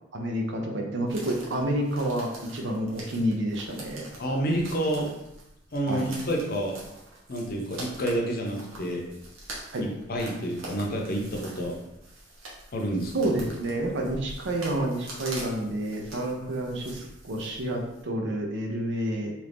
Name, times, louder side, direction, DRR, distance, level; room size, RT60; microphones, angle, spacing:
voice 1, 0.1-4.1 5.9-6.1 9.7-9.8 13.1-19.3, right 1 dB, 65° right, 2 dB, 0.6 m, -29 dB
sound 1, 1.1-18.0, right 2 dB, 90° right, 0.9 m, -44 dB
voice 2, 4.2-5.1 5.7-6.8 7.3-9.0 9.8-11.8 12.7-13.1, right 1 dB, 50° left, 0 dB, 0.6 m, -29 dB
2.9 x 2.6 x 3.4 m, 0.86 s
head